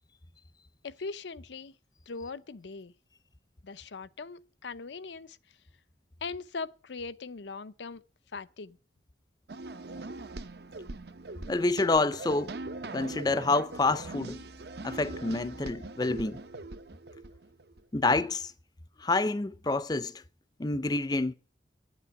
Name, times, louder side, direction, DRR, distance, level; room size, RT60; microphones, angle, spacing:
voice 1, 0.8-1.7 2.1-2.9 3.6-5.4 6.2-8.0 8.3-8.8, left 4 dB, 85° left, 0.6 m, -40 dB
sound 1, 9.5-17.8, right 2 dB, 65° right, 0.8 m, -42 dB
voice 2, 11.5-12.5 12.9-14.4 14.8-16.4 17.9-18.5 19.0-20.1 20.6-21.3, left 3 dB, 20° left, 0.5 m, -28 dB
9.4 x 8.2 x 8.7 m
head